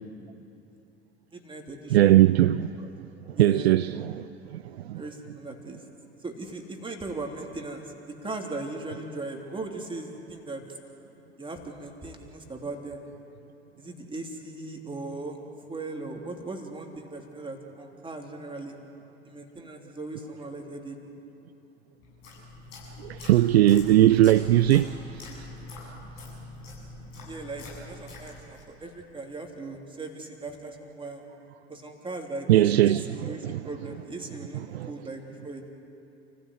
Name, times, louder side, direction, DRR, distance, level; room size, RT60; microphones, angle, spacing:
voice 1, 1.3-2.1 2.8-2.9 3.4-3.7 4.9-5.8 6.2-10.6 11.4-13.0 13.8-15.4 15.7-18.7 19.2-21.0 27.2-31.2 31.7-35.7, right 2 dB, 15° right, 3.2 m, -38 dB
voice 2, 1.9-2.7 3.4-5.0 23.0-24.9 32.5-33.6 34.7-34.9, right 13 dB, 70° right, 0.5 m, -20 dB
sound 1, 22.0-28.7, left 2 dB, 60° left, 8.0 m, -43 dB
29.0 x 15.5 x 8.2 m
figure-of-eight pair, 65°, 33 cm